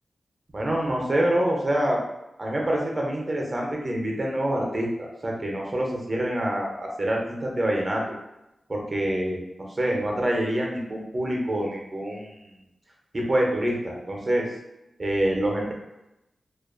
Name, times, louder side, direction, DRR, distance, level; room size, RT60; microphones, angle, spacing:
voice 1, 0.5-2.0 2.4-8.0 8.7-9.4 9.8-12.5 13.1-14.5 15.0-15.7, right 1 dB, 30° right, -1 dB, 0.4 m, -26 dB
2.4 x 2.2 x 2.4 m, 0.93 s
wide cardioid pair, 150°, 0 cm